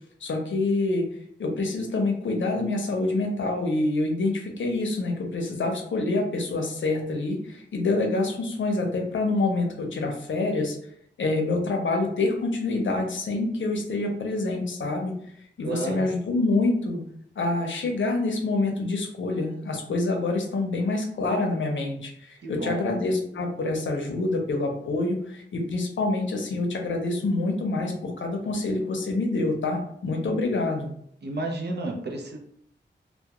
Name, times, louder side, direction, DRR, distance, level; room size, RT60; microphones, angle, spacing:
voice 1, 0.2-1.0 1.4-10.8 11.2-15.2 15.6-17.0 17.4-30.9, left 2 dB, 90° left, 2 dB, 0.6 m, -26 dB
voice 2, 15.6-16.1 22.4-22.9 31.2-32.4, right 2 dB, 60° right, 2 dB, 0.5 m, -32 dB
2.3 x 2.1 x 2.9 m, 0.69 s
wide cardioid pair, 110°, 19 cm